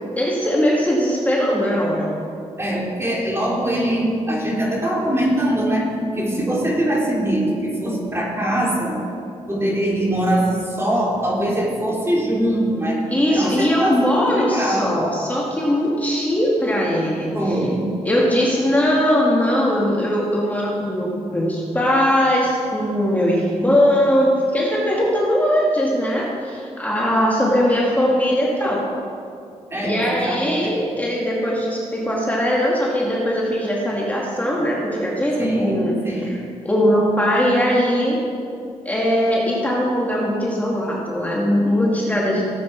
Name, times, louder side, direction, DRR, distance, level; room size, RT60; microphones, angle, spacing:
voice 1, 0.2-2.1 13.1-17.6 18.0-28.9 29.8-35.9 36.2-38.2 38.8-42.4, equal, 15° left, -4 dB, 2.3 m, -20 dB
voice 2, 2.6-9.0 9.5-13.0 13.3-15.0 17.3-17.9 29.7-30.7 35.4-36.4, right 1 dB, 20° right, -3 dB, 3.3 m, -22 dB
16.5 x 8.4 x 4.6 m, 2.4 s
cardioid pair, 75°, 12 cm